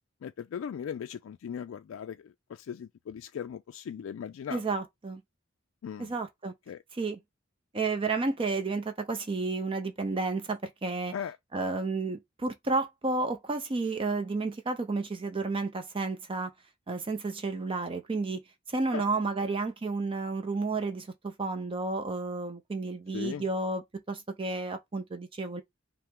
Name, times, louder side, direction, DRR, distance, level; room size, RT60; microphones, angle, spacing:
voice 1, 0.2-4.6 5.8-6.1 6.7-6.8 11.1-11.4 18.9-19.0 19.4-19.5 23.1-23.4, left 8 dB, 75° left, 0.3 m, -38 dB
voice 2, 4.5-5.2 6.0-6.5 6.9-7.2 7.7-11.1 11.5-16.5 16.9-18.4 18.7-25.6, right 3 dB, 25° right, 0.5 m, -31 dB
5.5 x 2.1 x 3.6 m
head